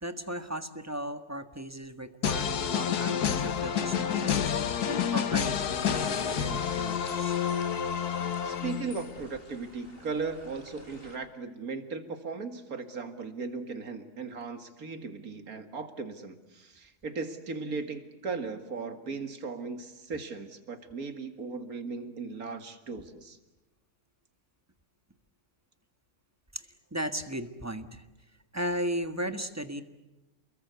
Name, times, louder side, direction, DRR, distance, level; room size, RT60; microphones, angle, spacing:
voice 1, 0.0-7.4 26.5-28.1 28.5-29.8, equal, 10° right, 9 dB, 1.3 m, -36 dB
sound 1, 2.2-9.2, left 8 dB, 80° left, 1.7 m, -29 dB
sound 2, 5.9-11.2, left 1 dB, 35° left, 3.9 m, -48 dB
voice 2, 8.4-23.4, right 4 dB, 65° right, 8 dB, 2.4 m, -37 dB
29.5 x 22.0 x 8.1 m, 1.0 s
omnidirectional pair, 1.7 m